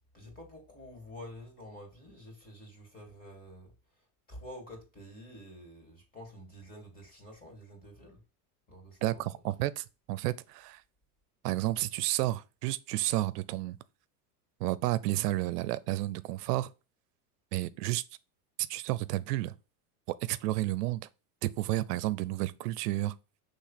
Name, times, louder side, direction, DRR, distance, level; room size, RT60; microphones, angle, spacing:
voice 1, 0.1-3.7 4.0-8.2 8.7-9.4, equal, 20° left, 2.7 m, -49 dB
voice 2, 9.0-10.8 11.4-13.8 14.6-16.7 17.5-18.0 18.7-19.5 20.2-21.1 21.4-23.1, right 16 dB, 85° right, 0.7 m, -31 dB
6.4 x 3.3 x 5.8 m
supercardioid pair, 145°, 46 cm